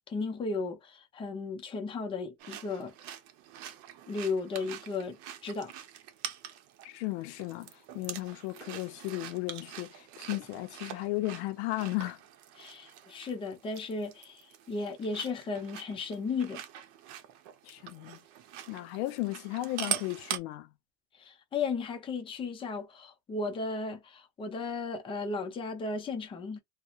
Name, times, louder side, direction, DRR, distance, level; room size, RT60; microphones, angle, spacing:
voice 1, 0.1-2.9 4.1-5.2 5.4-5.7 12.6-16.6 21.2-26.6, left 4 dB, 15° left, 0.5 m, -35 dB
sound 1, 2.4-20.4, right 10 dB, 60° right, 0.7 m, -43 dB
voice 2, 6.8-12.2 17.6-18.2 18.7-20.7, left 18 dB, 80° left, 0.5 m, -35 dB
2.7 x 2.1 x 2.3 m
cardioid pair, 155°, 32 cm